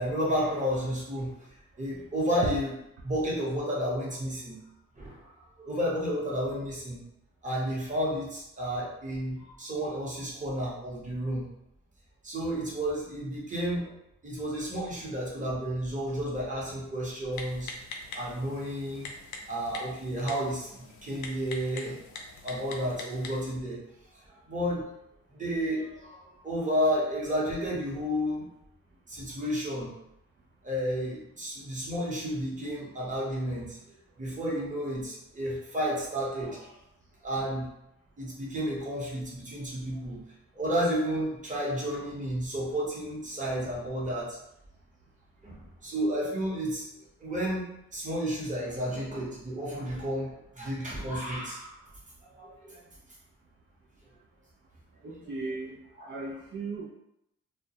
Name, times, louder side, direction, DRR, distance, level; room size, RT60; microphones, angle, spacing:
voice 1, 0.0-1.4 1.8-2.7 3.0-4.6 5.0-5.3 5.6-7.0 7.4-11.5 12.2-13.9 14.2-17.7 18.1-19.1 19.5-22.0 22.4-23.8 24.5-24.9 25.3-28.5 29.1-29.9 30.6-36.7 37.2-37.7 38.2-40.2 40.5-44.4 45.4-46.9 47.2-51.8 52.3-52.8 56.0-56.1, equal, 25° right, -5 dB, 1.0 m, -31 dB
Typing, 17.3-23.5, left 3 dB, 70° left, 0.5 m, -44 dB
voice 2, 55.0-55.8 56.0-56.9, right 3 dB, 40° right, -3 dB, 0.5 m, -37 dB
2.2 x 2.2 x 2.8 m, 0.82 s
cardioid pair, 90°, 30 cm